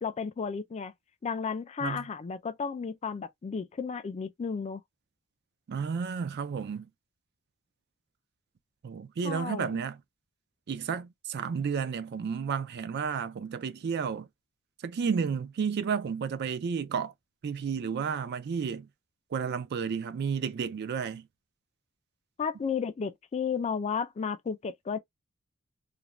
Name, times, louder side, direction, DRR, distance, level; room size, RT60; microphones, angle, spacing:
voice 1, 0.0-0.9 1.2-4.8 9.2-9.8 22.4-25.0, left 6 dB, 30° left, 0.3 m, -33 dB
voice 2, 5.7-6.9 8.8-10.0 10.7-14.3 14.8-17.1 17.4-18.9 19.3-21.3, right 6 dB, 50° right, 0.3 m, -32 dB
2.5 x 2.1 x 2.9 m
head